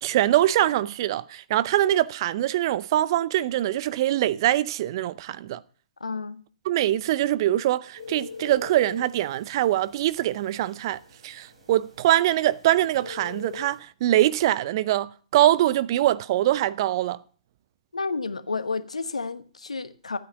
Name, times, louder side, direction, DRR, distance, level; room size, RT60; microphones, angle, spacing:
voice 1, 0.0-5.6 6.7-17.2, right 14 dB, 45° right, 0.6 m, -23 dB
voice 2, 6.0-6.4 17.9-20.2, left 4 dB, 80° left, 1.1 m, -31 dB
sound 1, 8.0-13.8, left 5 dB, 60° right, 3.5 m, -43 dB
12.0 x 8.9 x 6.0 m
figure-of-eight pair, 120°, 3 cm